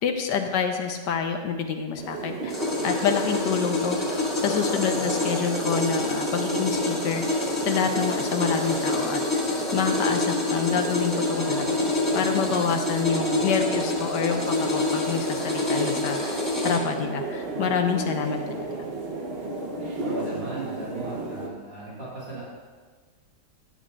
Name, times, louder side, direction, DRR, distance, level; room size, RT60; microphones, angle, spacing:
voice 1, 0.0-2.6 2.8-4.0 4.3-7.3 7.6-9.2 9.7-11.7 12.1-18.9, left 6 dB, 80° left, 5 dB, 1.3 m, -27 dB
sound 1, 1.9-21.5, right 2 dB, 40° right, 1.1 m, -33 dB
sound 2, 2.5-16.8, left 2 dB, 15° left, 2.5 m, -27 dB
voice 2, 19.9-22.4, right 2 dB, 80° right, -9 dB, 2.9 m, -37 dB
11.5 x 10.0 x 2.5 m, 1.4 s
omnidirectional pair, 1.9 m